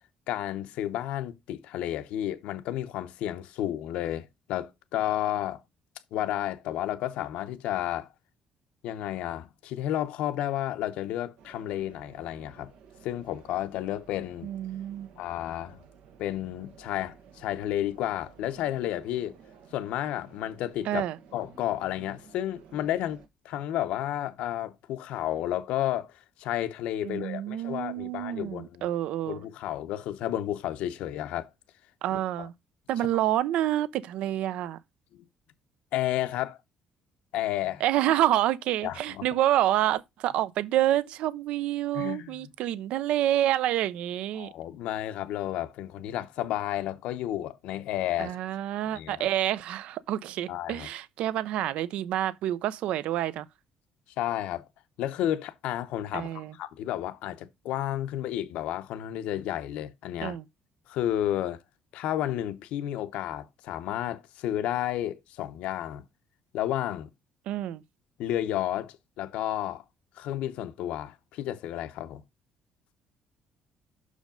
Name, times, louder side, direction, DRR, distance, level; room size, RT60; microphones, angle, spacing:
voice 1, 0.3-5.6 6.1-8.1 8.8-12.7 13.0-14.5 15.2-15.8 16.2-19.3 19.7-21.1 21.3-26.1 26.4-28.8 29.3-31.5 32.4-32.5 35.1-35.2 35.9-36.6 37.3-37.8 38.8-39.3 41.9-42.4 44.3-48.4 48.9-49.3 50.5-50.9 54.2-54.7 55.0-60.4 60.9-61.6 61.9-66.1 66.5-67.1 68.2-69.8 70.2-72.2, left 12 dB, 80° left, 0.8 m, -32 dB
sound 1, 11.4-23.3, right 7 dB, 90° right, 1.4 m, -54 dB
voice 2, 14.4-15.1 20.9-21.2 27.0-29.4 32.0-32.5 32.9-34.8 37.8-44.5 48.2-53.5 56.1-56.5 60.2-60.4 67.5-67.8, right 13 dB, 70° right, 0.5 m, -28 dB
6.5 x 5.0 x 5.1 m
cardioid pair, 160°, 2 cm